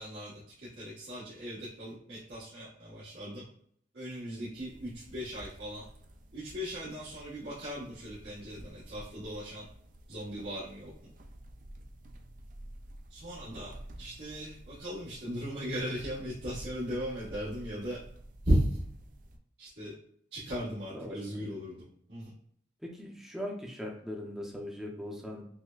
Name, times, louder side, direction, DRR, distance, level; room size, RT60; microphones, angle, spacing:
voice 1, 0.0-3.4 3.9-5.8 6.3-9.7 10.1-11.1 13.1-18.0 18.4-18.8 19.6-19.9 20.3-22.3, equal, 80° right, -11 dB, 1.3 m, -36 dB
sound 1, 4.6-19.4, right 1 dB, 45° right, 0.4 m, -51 dB
voice 2, 20.9-21.6 22.8-25.4, left 1 dB, ahead, -1 dB, 0.6 m, -40 dB
6.0 x 2.1 x 2.4 m, 0.65 s
head